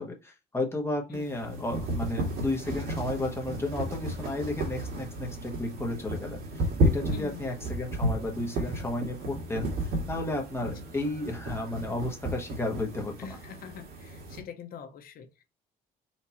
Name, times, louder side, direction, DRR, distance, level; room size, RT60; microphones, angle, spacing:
voice 1, 0.0-13.3, left 2 dB, 15° left, 1.1 m, -33 dB
sound 1, 1.1-14.4, right 1 dB, 70° right, 1.7 m, -33 dB
voice 2, 7.1-7.5 13.2-15.4, left 8 dB, 60° left, 0.8 m, -44 dB
4.4 x 2.7 x 4.2 m
cardioid pair, 110°, 17 cm